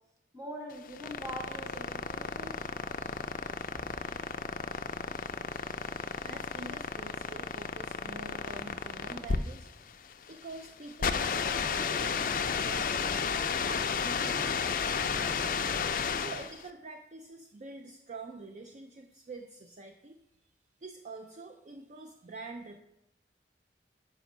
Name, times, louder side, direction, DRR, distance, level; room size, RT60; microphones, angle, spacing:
voice 1, 0.3-2.5 3.1-3.2 3.7-3.8, right 1 dB, 20° right, 1 dB, 1.3 m, -43 dB
sound 1, 0.7-16.6, left 6 dB, 50° left, 0.4 m, -32 dB
voice 2, 6.2-9.7 10.3-12.2 12.5-15.7 16.1-20.2 20.8-22.8, right 3 dB, 40° right, 5 dB, 0.4 m, -46 dB
5.4 x 5.2 x 6.0 m, 0.87 s
head